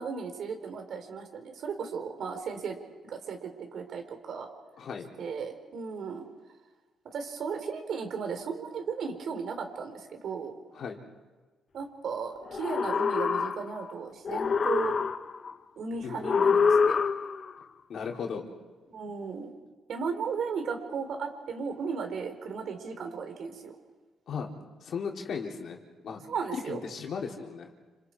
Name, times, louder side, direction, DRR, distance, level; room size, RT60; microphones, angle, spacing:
voice 1, 0.0-2.8 3.0-4.5 5.2-6.2 7.0-10.5 11.7-15.0 15.8-17.0 18.9-19.5 19.9-23.7 26.3-26.8, right 5 dB, 65° right, 5 dB, 4.4 m, -35 dB
voice 2, 4.8-5.1 10.7-11.0 16.0-16.2 17.9-18.5 24.3-24.5 24.8-26.3 26.7-27.7, left 6 dB, 60° left, 1 dB, 4.0 m, -36 dB
sound 1, 12.5-13.9 14.2-15.5 16.2-17.5, left 5 dB, 45° left, 0.8 m, -26 dB
30.0 x 27.0 x 4.9 m, 1.3 s
cardioid pair, 90°, 0 cm